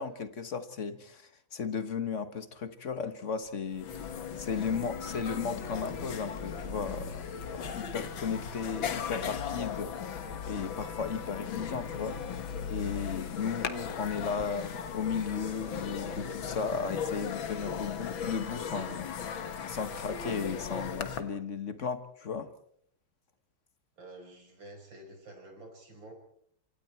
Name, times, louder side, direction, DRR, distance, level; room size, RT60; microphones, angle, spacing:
voice 1, 0.0-7.2 7.5-22.5, left 6 dB, 40° left, 1.3 m, -35 dB
sound 1, 3.5-3.6 3.7-21.2, left 7 dB, 70° left, 2.2 m, -37 dB
voice 2, 24.0-26.1, right 2 dB, 60° right, 5.9 m, -49 dB
27.0 x 25.5 x 4.4 m
omnidirectional pair, 2.3 m